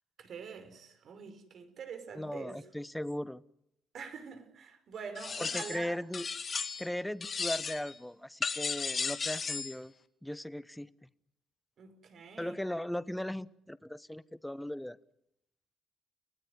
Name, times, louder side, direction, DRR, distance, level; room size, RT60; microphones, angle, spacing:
voice 1, 0.2-2.6 3.9-6.0 11.8-12.5, right 6 dB, 60° right, 9 dB, 5.4 m, -45 dB
voice 2, 2.1-3.4 5.4-6.3 6.8-9.9 10.2-10.9 12.4-15.0, left 1 dB, 5° left, 16 dB, 1.0 m, -38 dB
sound 1, 5.2-5.8 6.1-6.9 7.2-7.9 8.4-9.7, left 5 dB, 40° left, 2.2 m, -35 dB
30.0 x 17.5 x 9.7 m, 0.80 s
cardioid pair, 90°, 0 cm